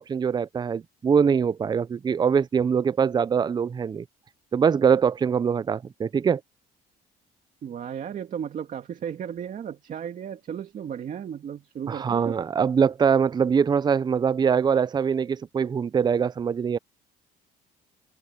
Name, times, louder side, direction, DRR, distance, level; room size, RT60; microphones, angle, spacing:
voice 1, 0.0-4.0 4.5-6.4 11.9-16.8, right 6 dB, 25° right, 0.5 m, -23 dB
voice 2, 7.6-12.4, right 8 dB, 50° right, 2.3 m, -34 dB
cardioid pair, 110°, 17 cm